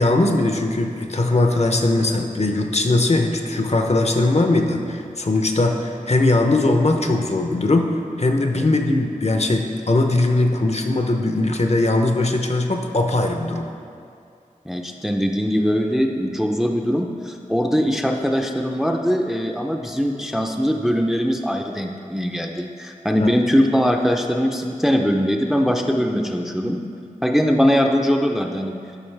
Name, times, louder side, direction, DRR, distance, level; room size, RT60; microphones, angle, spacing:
voice 1, 0.0-13.7 23.2-23.3, left 2 dB, 50° left, 4 dB, 0.6 m, -20 dB
voice 2, 14.7-26.8 27.2-28.8, equal, 5° right, 3 dB, 0.5 m, -21 dB
11.5 x 5.0 x 3.3 m, 2.4 s
wide cardioid pair, 60°, 14 cm